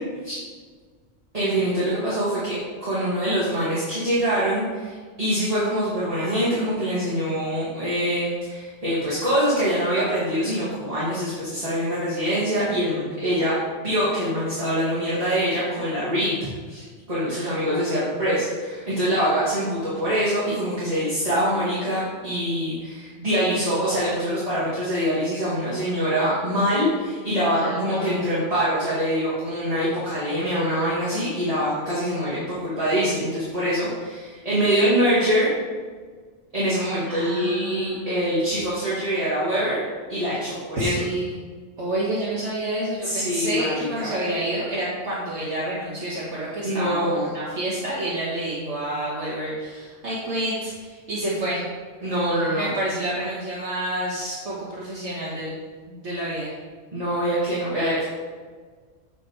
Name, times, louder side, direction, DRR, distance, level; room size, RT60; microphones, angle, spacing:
voice 1, 1.3-13.5 13.8-16.4 16.7-35.5 36.5-39.8 40.1-41.0 43.0-44.1 46.6-47.3 52.0-52.7 56.9-58.0, equal, 30° right, -11 dB, 2.3 m, -24 dB
voice 2, 27.5-28.2 37.1-38.3 40.8-41.4 41.8-47.0 47.3-51.6 52.6-55.6 55.9-56.5, right 1 dB, 75° right, -8 dB, 1.9 m, -29 dB
8.9 x 4.4 x 4.7 m, 1.5 s
omnidirectional pair, 1.2 m